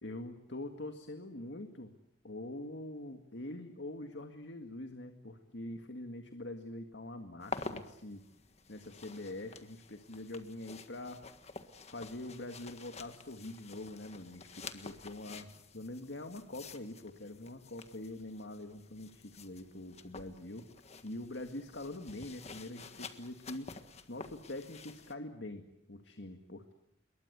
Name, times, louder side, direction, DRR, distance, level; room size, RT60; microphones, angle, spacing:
voice 1, 0.0-1.9 2.2-8.2 8.7-11.3 11.9-20.7 21.0-23.7 24.1-26.7, left 1 dB, 70° left, 6 dB, 2.0 m, -44 dB
sound 1, 7.4-25.1, left 4 dB, 35° left, 1.6 m, -49 dB
27.5 x 22.5 x 8.2 m, 0.77 s
head